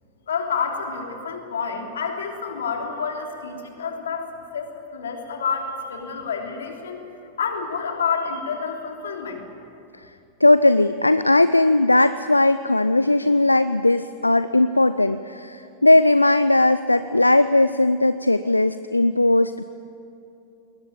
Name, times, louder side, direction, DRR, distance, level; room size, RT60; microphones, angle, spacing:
voice 1, 0.3-7.0 7.4-9.5, left 5 dB, 65° left, 2 dB, 3.2 m, -29 dB
voice 2, 10.4-19.6, left 2 dB, 85° left, 13 dB, 0.5 m, -18 dB
21.0 x 19.0 x 9.2 m, 2.8 s
figure-of-eight pair, 90°, 0 cm